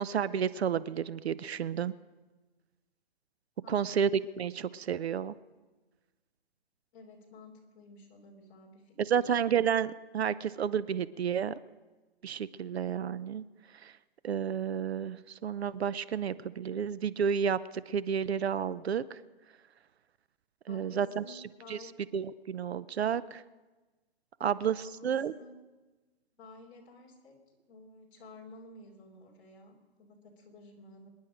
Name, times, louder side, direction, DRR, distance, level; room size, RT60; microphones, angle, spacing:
voice 1, 0.0-1.9 3.7-4.1 4.4-5.3 9.0-11.6 12.2-13.4 13.8-13.9 14.2-19.2 20.7-21.2 21.7-21.8 22.1-23.4 24.4-25.3, right 8 dB, 80° right, 17 dB, 0.7 m, -31 dB
voice 2, 3.6-4.0 6.9-9.3 20.7-22.0 24.4-25.6 26.4-27.4 27.7-31.1, left 2 dB, 20° left, -3 dB, 2.9 m, -52 dB
25.5 x 10.5 x 5.0 m, 1.2 s
hypercardioid pair, 170°, 31 cm